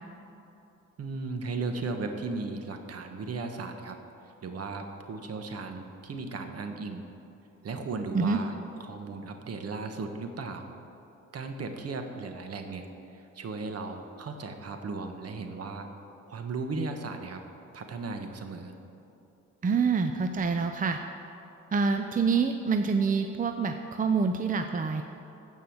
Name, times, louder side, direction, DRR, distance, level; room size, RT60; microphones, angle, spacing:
voice 1, 1.0-4.0 4.4-7.0 7.6-8.5 8.8-10.7 11.3-12.9 13.1-15.9 16.3-17.4 17.7-18.7, right 3 dB, 55° right, 6 dB, 1.4 m, -36 dB
voice 2, 19.6-21.0 21.7-25.0, right 5 dB, 25° right, 6 dB, 0.6 m, -26 dB
15.5 x 5.5 x 7.9 m, 2.9 s
cardioid pair, 90°, 30 cm